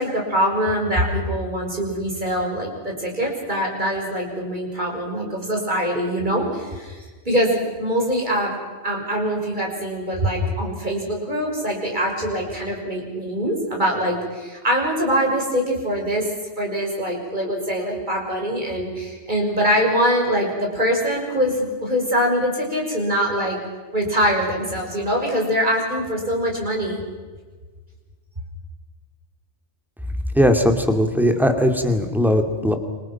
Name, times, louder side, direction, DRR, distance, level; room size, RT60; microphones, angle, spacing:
voice 1, 0.0-8.6 8.8-16.3 16.6-23.6 23.9-27.0, equal, 40° right, 0 dB, 6.3 m, -23 dB
voice 2, 30.3-32.7, equal, ahead, 5 dB, 2.6 m, -18 dB
27.5 x 26.5 x 6.0 m, 1.4 s
omnidirectional pair, 1.2 m